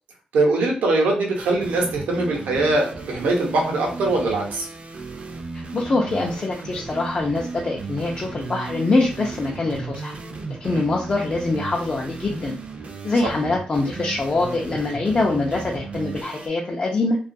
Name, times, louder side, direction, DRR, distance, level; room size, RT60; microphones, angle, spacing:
voice 1, 0.3-4.7 10.7-10.9, right 2 dB, 90° right, 0 dB, 0.7 m, -22 dB
sound 1, 1.3-16.5, right 4 dB, 50° right, 0.4 m, -35 dB
voice 2, 5.5-10.1 10.6-12.6 13.0-17.2, left 2 dB, 35° left, -1 dB, 0.5 m, -24 dB
2.3 x 2.2 x 2.5 m, 0.41 s
cardioid pair, 80°, 3 cm